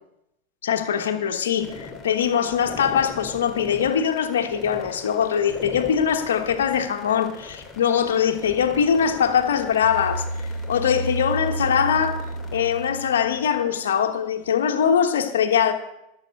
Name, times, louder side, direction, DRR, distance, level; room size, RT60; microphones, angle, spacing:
voice 1, 0.6-15.7, left 8 dB, 80° left, 5 dB, 1.2 m, -22 dB
sound 1, 1.6-12.9, left 4 dB, 25° left, 2.8 m, -40 dB
sound 2, 9.8-13.9, right 2 dB, 80° right, 3.2 m, -31 dB
11.5 x 7.5 x 8.1 m, 0.85 s
hypercardioid pair, 95°, 0 cm